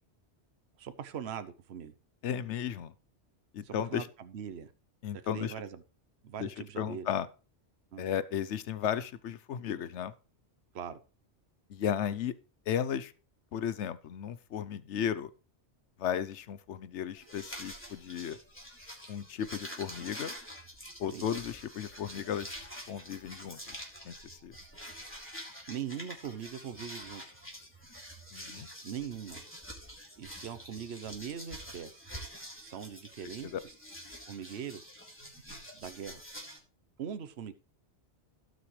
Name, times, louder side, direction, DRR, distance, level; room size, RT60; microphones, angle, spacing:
voice 1, 0.8-1.9 3.6-4.7 5.3-5.8 6.2-7.1 7.9-8.0 10.7-11.0 21.1-21.3 25.7-27.5 28.8-29.4 30.2-32.1 32.6-33.5 34.3-34.9 35.7-36.2 37.0-37.5, right 8 dB, 70° right, 1.1 m, -41 dB
voice 2, 2.2-2.9 3.5-4.1 5.0-5.5 6.4-7.3 8.0-10.1 11.7-12.4 12.7-13.1 13.5-15.3 16.0-18.4 19.1-20.3 21.0-22.5 22.9-23.8 24.0-24.1 24.4-24.5 28.3-28.7 33.4-33.6, left 9 dB, 80° left, 1.0 m, -34 dB
sound 1, 17.1-36.6, equal, 10° left, 3.2 m, -47 dB
17.0 x 6.4 x 3.2 m
omnidirectional pair, 1.2 m